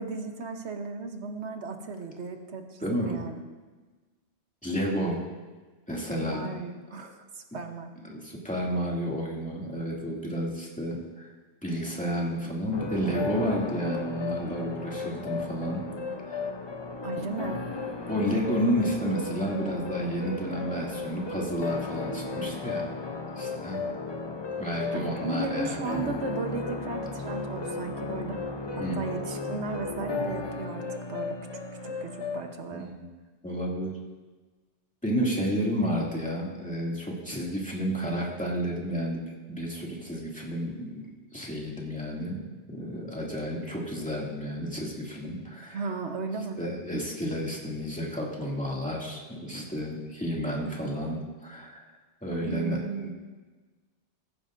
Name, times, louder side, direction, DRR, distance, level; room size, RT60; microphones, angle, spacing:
voice 1, 0.0-3.4 6.2-8.0 13.5-13.6 17.0-17.6 24.9-28.5 28.7-30.8 31.1-31.4 32.0-32.9 45.7-46.6 52.4-53.1, right 3 dB, 75° right, 5 dB, 1.3 m, -35 dB
voice 2, 2.8-3.2 4.6-5.2 5.9-6.5 7.5-7.6 8.0-11.3 11.6-15.8 16.2-16.6 18.0-22.9 23.4-23.8 24.6-26.0 28.8-28.9 32.7-33.1 33.4-33.9 35.0-39.2 39.5-45.9 46.6-51.8 52.2-53.1, equal, 5° left, -3 dB, 2.3 m, -31 dB
sound 1, 12.7-32.5, left 3 dB, 30° left, 0.6 m, -35 dB
15.0 x 14.5 x 2.6 m, 1.3 s
omnidirectional pair, 1.2 m